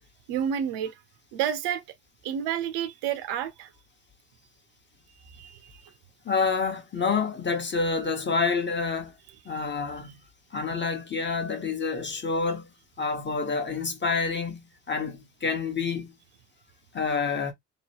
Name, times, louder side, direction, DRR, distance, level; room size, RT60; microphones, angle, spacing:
voice 1, 0.3-0.9 1.3-1.8 2.2-3.7 5.2-5.9, right 9 dB, 65° right, 0.6 m, -30 dB
voice 2, 6.2-9.1 9.4-10.2 10.5-12.7 13.0-16.1 16.9-17.5, left 4 dB, 25° left, 0.9 m, -28 dB
2.9 x 2.1 x 2.8 m
hypercardioid pair, 60°, 43 cm